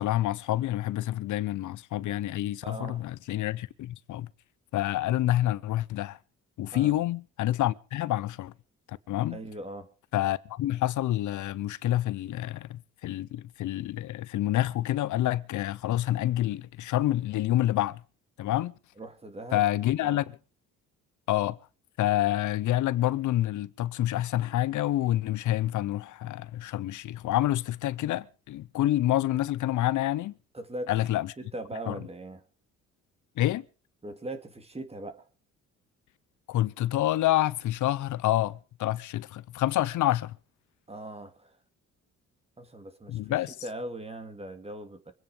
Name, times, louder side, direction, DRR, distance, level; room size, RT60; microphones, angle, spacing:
voice 1, 0.0-4.3 4.7-6.2 6.6-8.5 8.9-9.4 10.1-18.0 18.4-18.7 19.5-20.4 21.3-21.6 22.0-30.3 30.9-31.3 31.9-32.0 33.4-33.7 36.5-40.4 43.1-43.6, left 14 dB, 75° left, 0.9 m, -28 dB
voice 2, 2.6-3.1 6.7-7.0 9.3-9.9 19.0-19.6 20.0-20.2 30.5-30.9 31.4-32.4 34.0-35.3 40.9-41.6 42.6-43.2 43.6-45.1, right 1 dB, 20° right, 2.6 m, -40 dB
24.5 x 9.3 x 5.1 m
cardioid pair, 90°, 30 cm